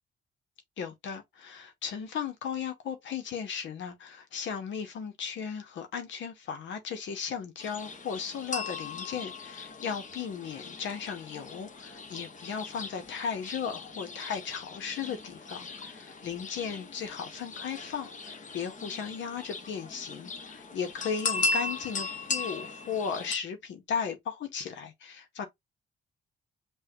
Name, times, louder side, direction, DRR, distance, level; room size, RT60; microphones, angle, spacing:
voice 1, 0.8-25.5, left 7 dB, 70° left, 0.9 m, -36 dB
sound 1, 7.6-23.4, left 3 dB, 40° left, 1.1 m, -38 dB
5.4 x 2.3 x 2.8 m
cardioid pair, 90°, 20 cm